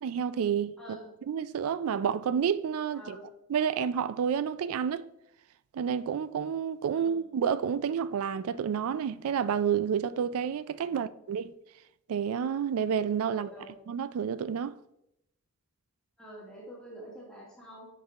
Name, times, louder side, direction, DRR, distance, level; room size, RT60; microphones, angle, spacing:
voice 1, 0.0-1.0 1.3-3.2 3.5-5.1 5.7-11.5 12.1-13.5 13.9-14.7, right 7 dB, 75° right, 0.3 m, -29 dB
voice 2, 0.8-1.1 2.9-3.2 6.9-7.2 13.3-13.7 16.2-17.9, right 1 dB, 5° left, 1.9 m, -47 dB
10.5 x 5.4 x 2.4 m
head